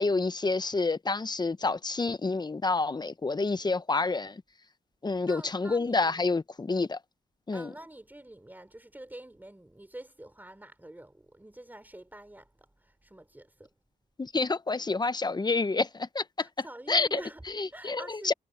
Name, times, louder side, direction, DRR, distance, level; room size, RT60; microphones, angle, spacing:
voice 1, 0.0-4.4 5.0-7.0 7.5-7.7 14.2-16.5 16.9-17.2 17.5-18.3, left 3 dB, 30° left, 1.0 m, -28 dB
voice 2, 5.1-6.4 7.5-13.7 16.4-18.3, right 1 dB, 10° right, 3.6 m, -47 dB
supercardioid pair, 55°, 15 cm